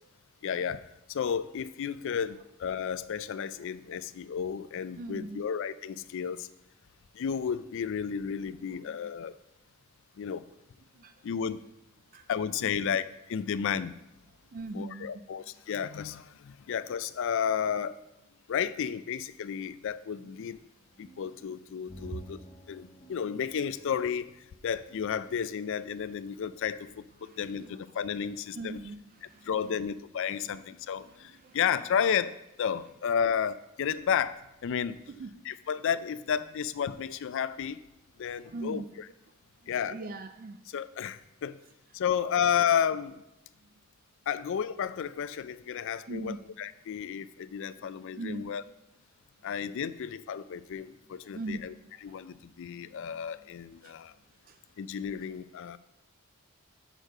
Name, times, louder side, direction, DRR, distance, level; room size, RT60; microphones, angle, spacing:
voice 1, 0.4-6.5 7.1-9.4 10.2-10.4 11.2-11.6 12.3-14.0 14.7-18.0 18.5-20.6 21.0-22.4 22.7-24.3 24.6-28.6 29.5-35.0 35.5-37.8 38.2-38.8 39.7-40.0 40.7-41.6 41.9-43.2 44.3-46.3 46.6-48.6 49.4-51.6 52.0-54.1 54.8-55.8, left 7 dB, 60° left, 15 dB, 0.4 m, -32 dB
voice 2, 5.0-5.5 7.0-7.1 8.6-9.0 10.9-11.3 12.1-12.3 12.6-13.0 14.3-15.6 20.2-20.7 21.1-21.2 22.0-22.4 26.3-26.4 27.2-29.9 30.3-30.5 31.0-31.8 35.1-35.5 38.4-38.9 39.6-40.6 41.9-42.0 43.6-43.8 46.1-46.4 47.8-48.5 49.3-50.1 50.7-54.7 55.2-55.3, right 2 dB, 40° right, 8 dB, 0.4 m, -44 dB
sound 1, 20.8-25.8, equal, 25° left, 1.0 m, -53 dB
6.3 x 5.1 x 6.5 m, 0.91 s
head